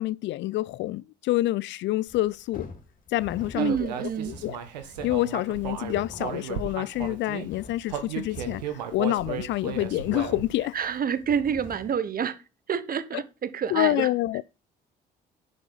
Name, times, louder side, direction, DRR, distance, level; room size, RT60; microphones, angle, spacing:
voice 1, 0.0-2.7 3.1-3.9 4.3-4.6 5.0-10.8 13.1-13.2 13.7-14.4, left 16 dB, 60° left, 0.4 m, -27 dB
sound 1, 2.1-12.0, left 3 dB, 40° left, 3.1 m, -46 dB
voice 2, 3.5-4.3 10.7-12.4 12.7-14.1, right 7 dB, 45° right, 1.2 m, -28 dB
Human voice, 3.6-7.5 7.9-10.6, right 9 dB, 85° right, 1.2 m, -35 dB
10.0 x 5.4 x 5.5 m
hypercardioid pair, 50°, 21 cm